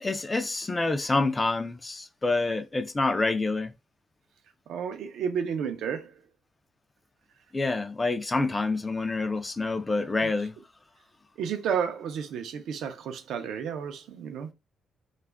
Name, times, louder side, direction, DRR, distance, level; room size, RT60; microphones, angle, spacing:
voice 1, 0.0-3.7 7.5-10.5, left 3 dB, 20° left, 0.4 m, -27 dB
voice 2, 4.7-6.2 10.2-10.3 11.4-14.5, right 7 dB, 75° right, 0.5 m, -32 dB
2.3 x 2.1 x 3.3 m
cardioid pair, 90°, 0 cm